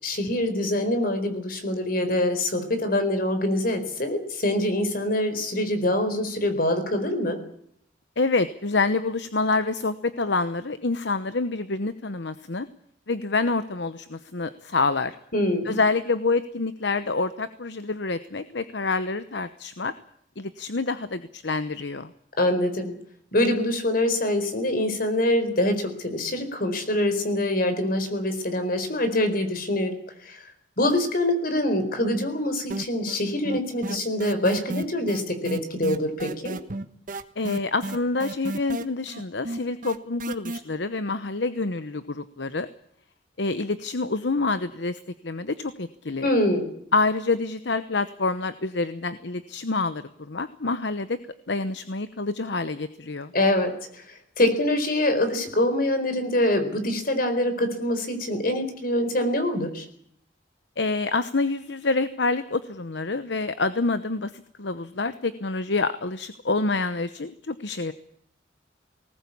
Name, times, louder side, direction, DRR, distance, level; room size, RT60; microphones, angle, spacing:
voice 1, 0.0-7.4 15.3-15.8 22.4-23.0 23.3-30.4 30.8-36.6 46.2-46.7 53.3-59.9, left 1 dB, 50° left, 8 dB, 4.4 m, -25 dB
voice 2, 8.2-12.7 13.1-15.2 15.6-19.9 20.4-22.1 37.4-42.7 43.4-46.3 46.9-51.2 51.5-53.3 60.8-67.9, left 3 dB, 65° left, 12 dB, 1.0 m, -27 dB
sound 1, 32.7-33.2 33.4-40.6, right 2 dB, 45° right, 1.4 m, -32 dB
20.0 x 19.0 x 8.6 m, 0.69 s
head